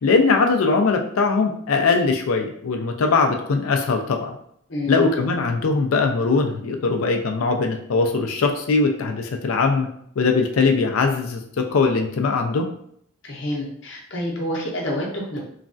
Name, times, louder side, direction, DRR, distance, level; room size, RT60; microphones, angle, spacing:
voice 1, 0.0-4.4 4.9-9.9 10.2-12.7, left 4 dB, 85° left, 4 dB, 0.4 m, -21 dB
voice 2, 13.2-15.4, left 1 dB, 60° left, -2 dB, 0.7 m, -28 dB
3.1 x 2.3 x 2.5 m, 0.67 s
head